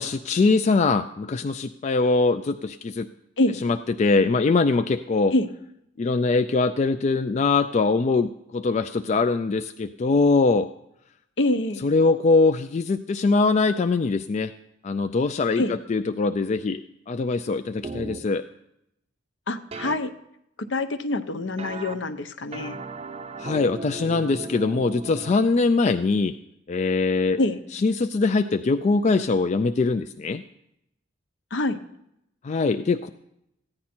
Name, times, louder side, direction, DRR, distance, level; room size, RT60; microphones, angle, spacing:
voice 1, 0.0-3.1 3.6-5.3 6.0-10.7 11.8-14.5 14.8-16.8 17.1-18.4 23.4-26.3 26.7-27.4 27.7-30.4 32.4-33.1, left 3 dB, 35° left, 9 dB, 0.3 m, -22 dB
voice 2, 11.4-11.9 15.6-15.7 19.5-20.1 20.7-22.8 27.4-27.6 31.5-31.8, left 2 dB, 65° left, 10 dB, 0.8 m, -25 dB
sound 1, 17.8-18.2 19.7-20.0 21.6-21.9 22.5-25.3, right 3 dB, 30° right, 0.5 m, -36 dB
14.5 x 9.7 x 4.3 m, 0.80 s
head